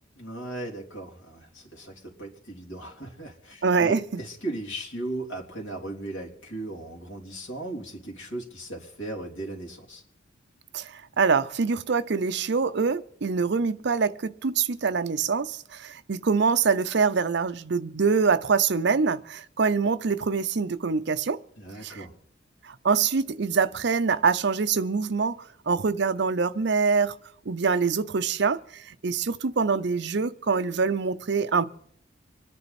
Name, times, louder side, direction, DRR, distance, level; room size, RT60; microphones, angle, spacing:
voice 1, 0.2-10.0 21.6-22.2, right 2 dB, 80° left, 3.5 m, -37 dB
voice 2, 3.6-4.2 10.7-21.4 21.8-22.0 22.6-25.4 25.7-27.1 27.5-31.7, right 5 dB, 60° right, 0.6 m, -25 dB
25.5 x 10.0 x 4.2 m
head